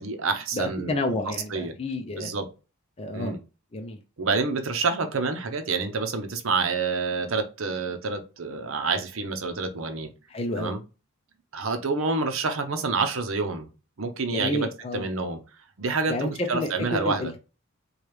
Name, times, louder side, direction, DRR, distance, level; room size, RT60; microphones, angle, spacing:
voice 1, 0.0-1.0 1.3-1.7 2.2-2.5 3.1-3.4 4.2-10.1 10.6-10.8 11.5-13.7 14.0-14.7 14.9-15.4 15.8-17.3, right 4 dB, 65° right, 0.7 m, -28 dB
voice 2, 0.5-2.3 3.0-3.3 3.7-4.0 10.3-10.7 14.3-15.0 16.1-17.4, left 2 dB, 25° left, 0.4 m, -30 dB
4.8 x 2.3 x 3.1 m
head